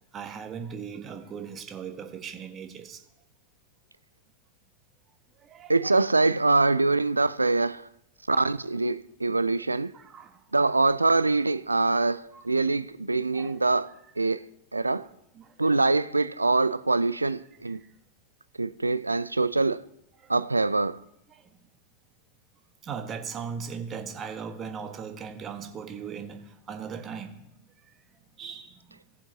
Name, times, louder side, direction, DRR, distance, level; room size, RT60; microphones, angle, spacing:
voice 1, 0.1-3.0 5.4-5.9 8.4-8.5 9.9-10.4 12.3-12.4 13.3-13.6 14.9-16.0 20.2-20.4 21.3-21.5 22.8-27.5 27.8-27.9 28.4-29.0, right 6 dB, 25° right, 1.4 m, -39 dB
voice 2, 5.7-7.9 8.3-9.9 10.5-14.5 14.7-15.1 15.6-17.8 18.6-19.8 20.3-21.0, right 3 dB, 80° right, 0.3 m, -24 dB
18.0 x 7.2 x 2.9 m
figure-of-eight pair, 90°, 0 cm